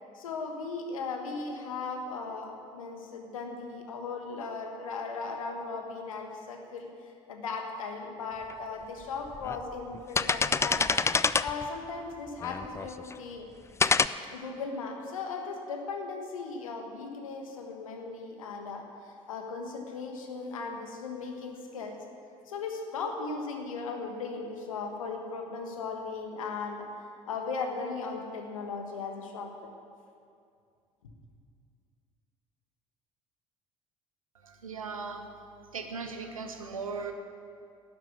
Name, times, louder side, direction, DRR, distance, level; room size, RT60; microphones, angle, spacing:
voice 1, 0.1-6.9 7.3-10.8 11.4-13.5 14.3-22.0 22.5-26.8 27.3-29.5, left 4 dB, 80° left, 3 dB, 1.4 m, -37 dB
sound 1, 8.5-8.6 9.3-9.6 9.9-11.7 12.4-13.1 13.8-14.1, left 5 dB, 15° left, 0.4 m, -26 dB
voice 2, 34.4-35.3 35.7-37.1, right 4 dB, 85° right, 6 dB, 1.0 m, -38 dB
12.0 x 7.8 x 8.2 m, 2.4 s
figure-of-eight pair, 55°, 17 cm